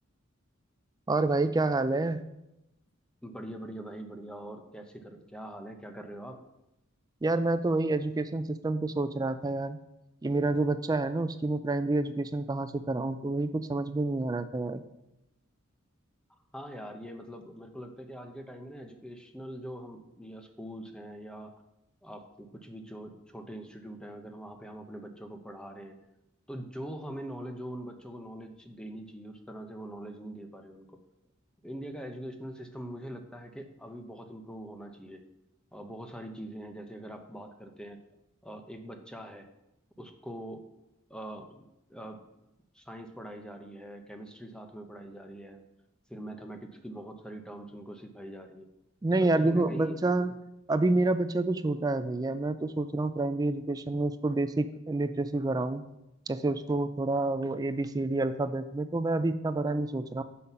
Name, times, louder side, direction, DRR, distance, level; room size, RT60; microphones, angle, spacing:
voice 1, 1.1-2.2 7.2-9.8 10.2-14.8 49.0-50.3 50.7-55.8 56.3-60.2, right 2 dB, 20° right, 11 dB, 0.3 m, -28 dB
voice 2, 3.2-6.4 16.5-21.5 22.0-26.0 26.5-31.0 31.6-35.2 35.7-38.0 38.4-39.5 40.0-40.6 41.1-41.6 41.9-42.2 42.7-45.6 46.1-48.7 49.2-50.0, right 1 dB, 5° left, 5 dB, 0.7 m, -43 dB
7.5 x 5.7 x 5.5 m, 0.90 s
head